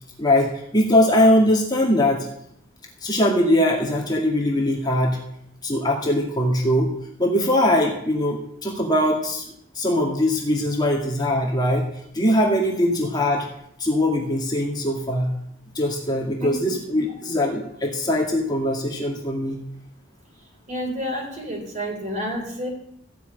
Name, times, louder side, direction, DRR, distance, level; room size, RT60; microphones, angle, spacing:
voice 1, 0.2-2.3 3.0-5.2 5.6-6.9 7.2-9.4 9.7-11.8 12.1-13.5 13.8-15.3 15.7-19.6, left 1 dB, 20° left, -2 dB, 2.2 m, -21 dB
voice 2, 20.7-22.7, equal, 35° right, 1 dB, 4.0 m, -29 dB
15.5 x 6.3 x 9.1 m, 0.73 s
head